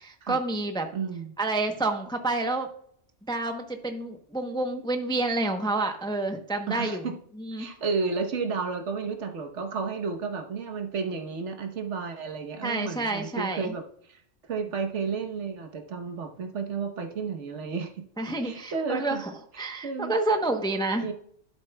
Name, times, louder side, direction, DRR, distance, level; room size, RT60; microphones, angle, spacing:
voice 1, 0.0-0.9 1.4-2.7 3.3-7.0 7.4-7.7 12.6-13.7 18.2-19.2 19.6-21.1, right 2 dB, 5° left, 5 dB, 0.6 m, -28 dB
voice 2, 0.9-1.3 6.7-7.2 7.6-13.8 14.1-14.2 14.5-18.0 18.4-19.2 19.5-20.1 20.9-21.1, right 5 dB, 70° right, 5 dB, 1.3 m, -32 dB
12.0 x 7.4 x 2.2 m, 0.63 s
omnidirectional pair, 1.3 m